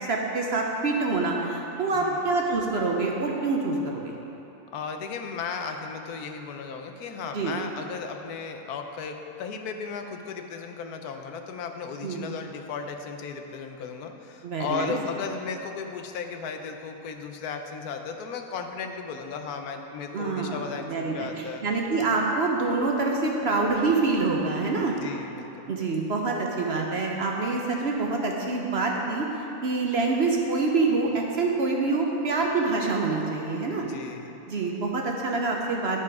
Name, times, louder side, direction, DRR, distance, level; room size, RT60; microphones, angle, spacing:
voice 1, 0.0-4.1 7.3-7.5 12.0-12.2 14.4-15.0 20.1-24.9 25.7-29.3 29.6-33.8 34.5-36.0, right 3 dB, 50° right, 0 dB, 0.9 m, -26 dB
voice 2, 1.9-2.3 4.7-21.6 25.0-25.7 33.8-34.4, left 5 dB, 85° left, 5 dB, 1.2 m, -35 dB
10.5 x 5.9 x 4.7 m, 3.0 s
omnidirectional pair, 1.6 m